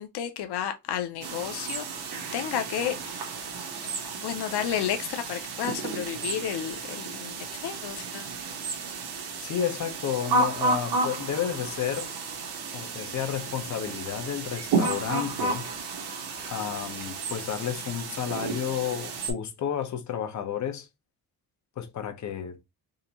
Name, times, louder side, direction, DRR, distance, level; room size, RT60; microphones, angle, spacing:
voice 1, 0.0-3.3 4.2-8.3, left 10 dB, 80° left, 0.6 m, -32 dB
sound 1, 1.2-19.3, right 3 dB, 75° right, 1.1 m, -32 dB
voice 2, 9.4-12.1 12.7-15.7 16.4-20.9 21.8-22.6, left 9 dB, 50° left, 0.8 m, -31 dB
3.8 x 2.6 x 2.8 m
cardioid pair, 135°, 39 cm